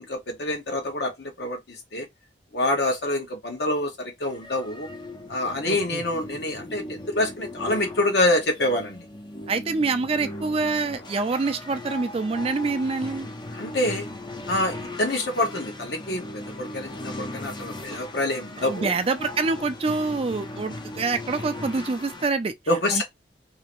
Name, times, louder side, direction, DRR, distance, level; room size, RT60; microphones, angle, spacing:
voice 1, 0.0-2.1 2.5-4.9 5.3-9.0 13.5-14.1 14.5-18.9 22.7-23.0, left 1 dB, 65° left, 1.0 m, -26 dB
sound 1, 4.3-22.3, left 1 dB, 25° left, 0.5 m, -38 dB
voice 2, 5.7-6.0 9.5-13.3 18.6-22.5 22.9-23.0, right 4 dB, 35° right, 0.4 m, -26 dB
2.8 x 2.6 x 3.0 m
head